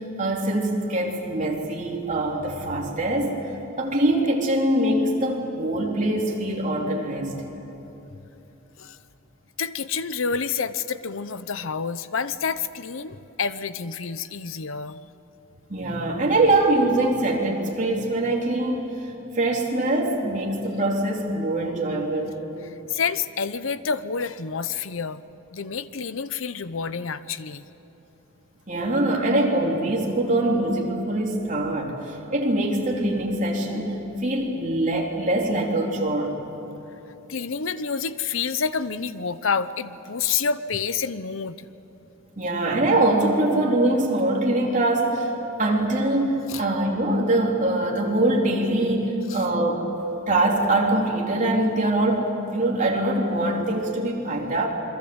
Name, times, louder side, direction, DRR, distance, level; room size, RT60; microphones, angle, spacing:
voice 1, 0.0-3.3 3.8-7.3 15.7-18.9 19.4-22.3 28.7-32.0 32.3-33.9 34.2-36.4 42.4-45.3 45.6-49.8 50.3-54.7, right 1 dB, 40° right, -1 dB, 3.9 m, -23 dB
voice 2, 9.6-15.0 22.6-25.2 25.5-27.6 37.3-41.7 46.5-46.6 49.3-49.5 50.0-50.3, left 6 dB, 70° left, 14 dB, 0.8 m, -28 dB
28.0 x 23.0 x 8.1 m, 3.0 s
head